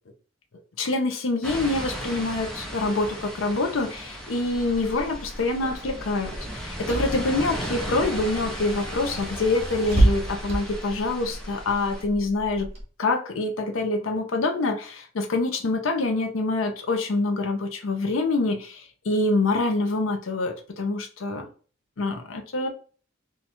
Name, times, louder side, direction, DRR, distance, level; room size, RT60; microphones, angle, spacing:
voice 1, 0.8-12.7 13.0-21.5 22.0-22.7, left 2 dB, 85° left, 4 dB, 0.6 m, -26 dB
sound 1, 1.4-12.0, equal, 5° left, 0.6 m, -36 dB
Car / Engine, 4.5-12.8, right 1 dB, 30° right, 1.0 m, -30 dB
2.8 x 2.3 x 4.2 m, 0.39 s
head